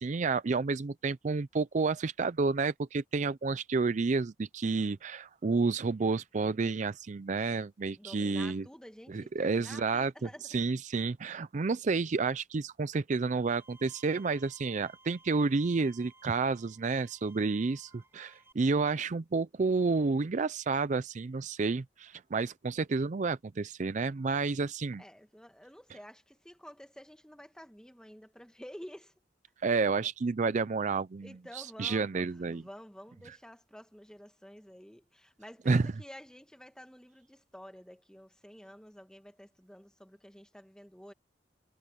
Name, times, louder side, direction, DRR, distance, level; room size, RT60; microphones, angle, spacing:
voice 1, 0.0-8.6 9.1-25.0 29.6-31.3 31.5-32.6 35.7-35.9, right 4 dB, 40° right, 0.5 m, -30 dB
voice 2, 7.9-10.6 25.0-29.1 31.2-41.1, equal, 5° left, 1.8 m, -50 dB
Bowed string instrument, 13.5-18.5, right 2 dB, 15° right, 5.3 m, -60 dB
head